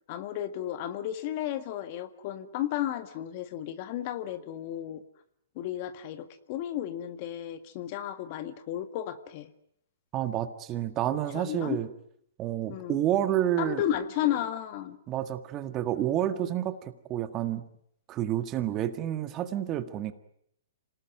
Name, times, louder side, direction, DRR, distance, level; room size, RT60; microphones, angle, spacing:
voice 1, 0.1-5.0 5.6-9.5 11.3-11.8 12.7-13.0 13.6-15.0, left 11 dB, 40° left, 10 dB, 1.8 m, -33 dB
voice 2, 10.1-11.9 12.4-13.8 15.1-17.6 18.1-20.1, right 11 dB, 25° right, 9 dB, 1.8 m, -29 dB
27.0 x 19.0 x 9.3 m, 0.73 s
hypercardioid pair, 145°, 0 cm